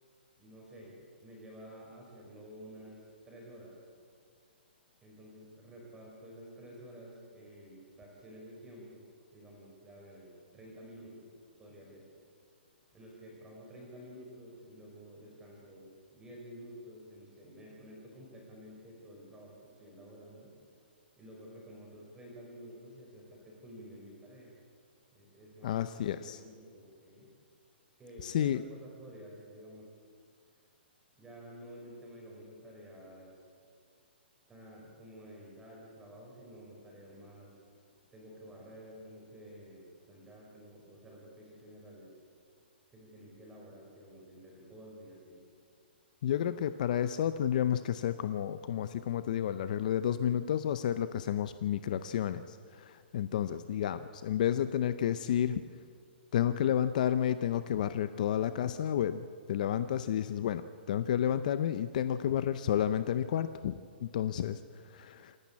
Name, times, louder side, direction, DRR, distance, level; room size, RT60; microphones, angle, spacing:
voice 1, 0.4-3.8 5.0-11.3 11.6-12.1 12.9-20.5 21.2-24.5 25.1-27.3 28.0-30.0 31.1-33.4 34.5-37.6 38.1-42.2 42.9-45.4, equal, 10° right, -2 dB, 5.2 m, -51 dB
voice 2, 25.6-26.4 28.2-28.6 46.2-55.6 56.3-63.7 64.0-64.6 64.9-65.4, left 10 dB, 45° left, 12 dB, 0.6 m, -31 dB
27.5 x 12.0 x 8.6 m, 2.2 s
hypercardioid pair, 165°, 6 cm